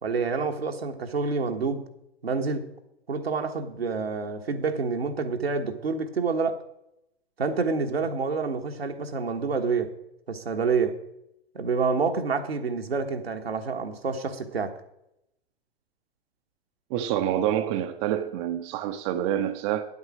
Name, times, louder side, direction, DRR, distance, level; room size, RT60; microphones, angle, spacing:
voice 1, 0.0-1.8 2.2-2.7 3.1-6.6 7.4-9.9 10.3-10.9 11.5-14.8, right 4 dB, 75° right, 1.4 m, -28 dB
voice 2, 16.9-19.9, right 11 dB, 30° right, 0.7 m, -27 dB
9.7 x 8.2 x 6.0 m
figure-of-eight pair, 105°, 31 cm